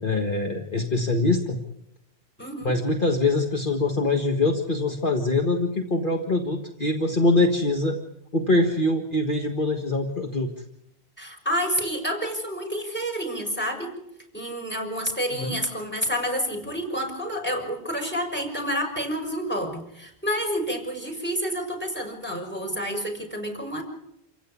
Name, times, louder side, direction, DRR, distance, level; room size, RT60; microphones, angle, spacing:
voice 1, 0.0-1.6 2.6-8.0 8.3-10.5 15.3-15.6, left 2 dB, 45° left, 2 dB, 1.9 m, -23 dB
voice 2, 2.4-2.7 11.2-13.9 14.3-23.8, equal, 10° left, 3 dB, 5.9 m, -29 dB
28.0 x 16.5 x 8.6 m, 0.81 s
omnidirectional pair, 1.2 m